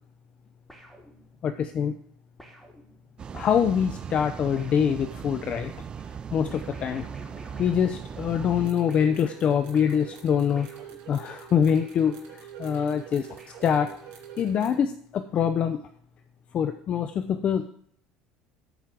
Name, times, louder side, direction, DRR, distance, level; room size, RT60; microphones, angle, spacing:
sound 1, 0.7-1.7 2.4-5.5 6.5-8.6 8.9-12.6 13.4-14.4, equal, 5° left, 3.7 m, -52 dB
voice 1, 1.4-2.0 3.3-5.7 6.1-7.1 7.6-10.7 11.1-13.3 13.6-14.0 14.4-15.8 16.5-17.7, left 8 dB, 45° left, 8 dB, 0.7 m, -25 dB
sound 2, 3.2-8.7, right 7 dB, 35° right, 0.4 m, -39 dB
sound 3, 8.6-14.7, right 10 dB, 80° right, 3.4 m, -45 dB
12.0 x 5.2 x 7.6 m, 0.62 s
supercardioid pair, 100°, 3 cm